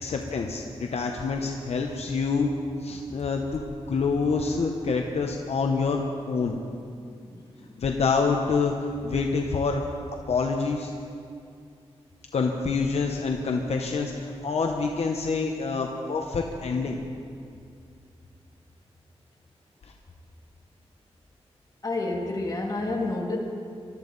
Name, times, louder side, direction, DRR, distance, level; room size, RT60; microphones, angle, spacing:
voice 1, 0.0-2.5 2.8-3.6 3.9-6.6 7.8-8.7 9.0-9.8 10.3-10.9 12.3-17.0, left 4 dB, 75° left, 2 dB, 1.0 m, -26 dB
voice 2, 7.2-7.8 21.8-23.4, left 2 dB, 35° left, -1 dB, 2.3 m, -30 dB
21.0 x 13.5 x 4.0 m, 2.3 s
wide cardioid pair, 115°, 11 cm